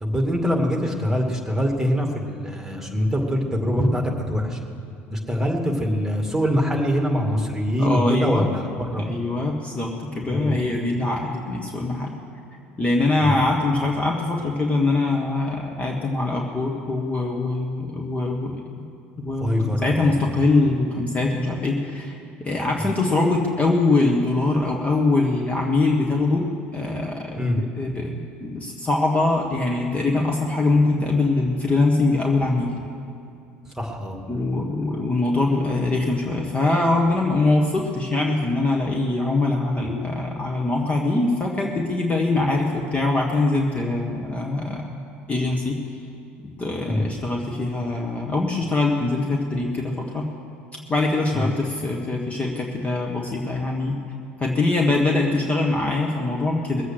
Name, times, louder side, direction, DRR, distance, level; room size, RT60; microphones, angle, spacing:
voice 1, 0.0-4.6 5.1-9.1 10.3-10.6 13.2-13.5 19.4-20.2 27.4-27.6 33.8-34.2 46.9-47.0 51.3-51.5, equal, 5° right, 1 dB, 2.2 m, -24 dB
voice 2, 7.7-8.5 8.9-12.1 12.8-18.5 19.2-22.1 22.4-26.5 26.7-32.7 34.3-45.0 45.3-45.7 46.6-50.2 50.9-54.0 54.4-56.8, left 2 dB, 20° left, -1 dB, 1.5 m, -23 dB
21.0 x 8.0 x 6.4 m, 2.6 s
figure-of-eight pair, 65°, 7 cm